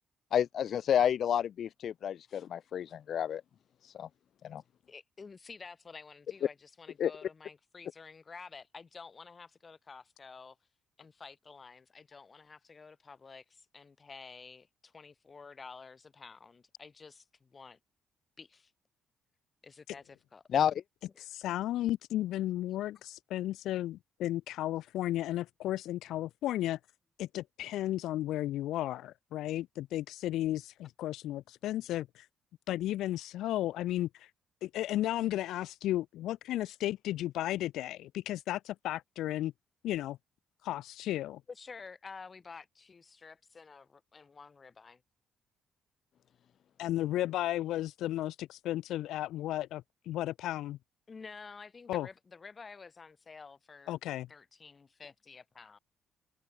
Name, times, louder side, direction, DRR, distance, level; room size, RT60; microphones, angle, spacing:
voice 1, 0.3-3.4 3.8-4.1 4.4-4.6 7.0-7.1 20.5-20.8, left 9 dB, 65° left, 1.2 m, -30 dB
voice 2, 4.9-10.6 11.0-17.8 18.4-18.7 19.6-20.4 21.2-21.4 41.5-45.0 51.1-54.0 54.3-55.8, left 5 dB, 35° left, 5.2 m, -50 dB
voice 3, 21.2-26.8 27.2-32.3 32.7-34.3 34.6-39.5 39.8-40.2 40.6-41.4 46.8-50.8 51.9-52.1 53.9-54.3, left 14 dB, 85° left, 1.2 m, -34 dB
cardioid pair, 90°, 0 cm